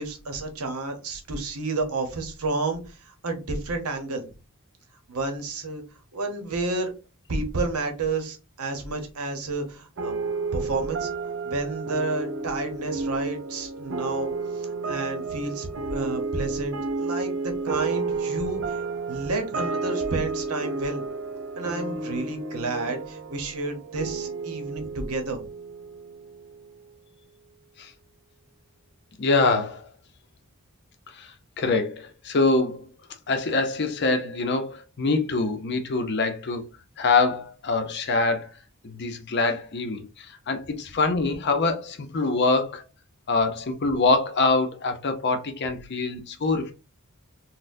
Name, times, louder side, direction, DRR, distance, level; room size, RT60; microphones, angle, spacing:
voice 1, 0.0-4.3 5.1-5.8 6.1-6.9 7.3-10.1 10.5-11.1 11.4-14.3 14.5-18.8 19.1-21.0 21.6-25.4, right 2 dB, 85° right, 0.9 m, -30 dB
sound 1, 10.0-26.8, right 4 dB, 60° right, 0.5 m, -31 dB
voice 2, 29.2-29.9 31.1-32.9 33.3-36.7 37.0-38.6 38.8-42.8 43.3-46.7, left 3 dB, 50° left, 0.6 m, -24 dB
4.1 x 2.1 x 2.6 m
head